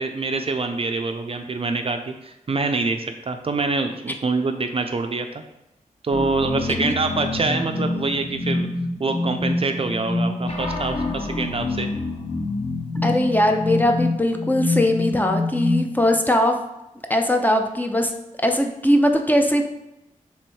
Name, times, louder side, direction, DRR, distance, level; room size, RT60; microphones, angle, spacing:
voice 1, 0.0-5.4 6.0-8.7 9.0-11.9 13.0-13.1, right 3 dB, 40° right, 6 dB, 0.4 m, -25 dB
sound 1, 6.1-16.1, left 2 dB, 45° left, 0.9 m, -26 dB
voice 2, 13.0-16.5 17.1-18.1 18.4-19.6, left 1 dB, 10° left, 4 dB, 0.5 m, -20 dB
3.5 x 3.1 x 4.4 m, 0.92 s
cardioid pair, 60°, 14 cm